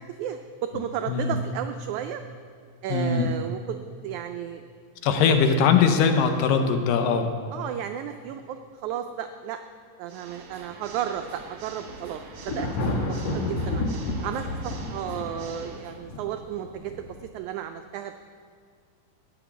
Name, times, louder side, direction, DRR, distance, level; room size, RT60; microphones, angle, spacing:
voice 1, 0.0-2.2 2.8-4.6 5.2-5.3 7.5-9.6 10.0-12.7 13.1-13.8 14.2-17.1 17.3-18.1, right 10 dB, 90° right, 7 dB, 1.7 m, -33 dB
voice 2, 2.9-3.3 5.0-7.3, left 6 dB, 80° left, 7 dB, 2.4 m, -21 dB
Water / Mechanisms, 10.0-16.0, right 5 dB, 55° right, 1.8 m, -45 dB
Thunder, 11.9-17.3, left 2 dB, 60° left, 1.8 m, -30 dB
13.0 x 6.0 x 9.3 m, 2.1 s
omnidirectional pair, 4.0 m